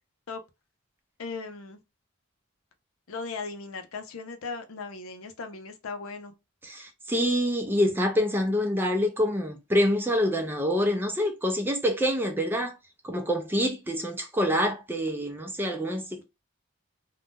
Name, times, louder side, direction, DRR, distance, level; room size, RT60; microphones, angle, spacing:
voice 1, 1.2-1.8 3.1-6.4, left 4 dB, 75° left, 0.5 m, -37 dB
voice 2, 6.6-12.8 13.0-16.2, equal, 10° right, 0.5 m, -26 dB
2.5 x 2.2 x 3.5 m
head